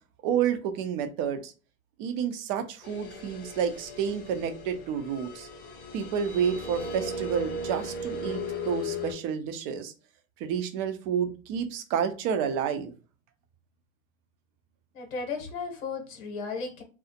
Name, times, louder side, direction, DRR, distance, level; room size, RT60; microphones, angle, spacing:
voice 1, 0.2-1.5 2.0-5.5 5.9-9.9 10.4-12.9, right 8 dB, 40° right, 7 dB, 0.5 m, -30 dB
sound 1, 2.8-9.1, left 1 dB, 25° left, 0.5 m, -37 dB
voice 2, 14.9-16.8, left 4 dB, 70° left, 4 dB, 0.9 m, -35 dB
2.3 x 2.1 x 2.8 m, 0.34 s
hypercardioid pair, 110°, 42 cm